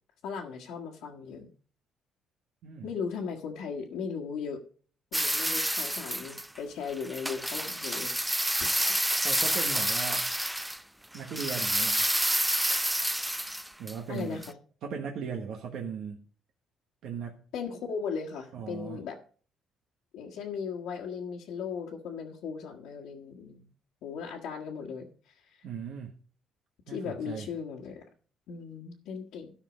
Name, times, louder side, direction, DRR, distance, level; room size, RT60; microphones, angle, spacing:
voice 1, 0.2-1.5 2.8-4.6 5.1-8.8 9.1-9.2 14.1-14.6 17.5-19.2 20.1-23.7 24.0-25.6 26.9-28.0 28.5-29.5, left 6 dB, 85° left, -2 dB, 1.5 m, -37 dB
sound 1, 5.1-6.6 6.9-10.8 11.1-13.9 14.2-14.5, right 1 dB, 5° right, 0.4 m, -29 dB
voice 2, 9.2-10.3 11.1-12.1 13.8-14.4 14.8-16.2 17.0-17.4 18.5-19.0 25.6-26.1 26.9-27.5, right 6 dB, 70° right, 1 dB, 1.3 m, -38 dB
13.5 x 5.8 x 5.1 m, 0.43 s
cardioid pair, 150°, 0 cm